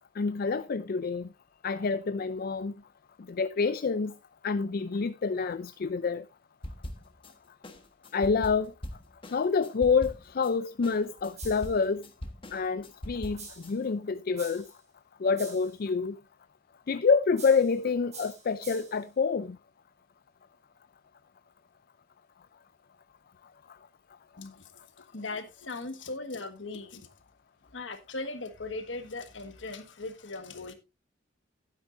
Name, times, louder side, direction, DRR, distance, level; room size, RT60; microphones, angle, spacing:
voice 1, 0.2-1.3 1.6-2.7 3.4-4.1 4.4-6.2 8.1-8.7 9.3-12.0 12.5-13.4 13.7-14.6 15.2-16.2 16.9-19.5, left 5 dB, 50° left, 0.4 m, -27 dB
sound 1, 6.6-7.3 7.6-10.5 10.8-13.7, equal, 30° left, 1.3 m, -41 dB
sound 2, 11.4-11.8 13.4-13.8 14.4-14.8 15.4-15.8 17.4-17.8 18.1-19.0, right 4 dB, 35° right, 5.0 m, -46 dB
voice 2, 24.4-24.7 25.1-27.1 27.7-30.7, left 3 dB, 75° left, 1.5 m, -38 dB
11.5 x 9.6 x 2.6 m
head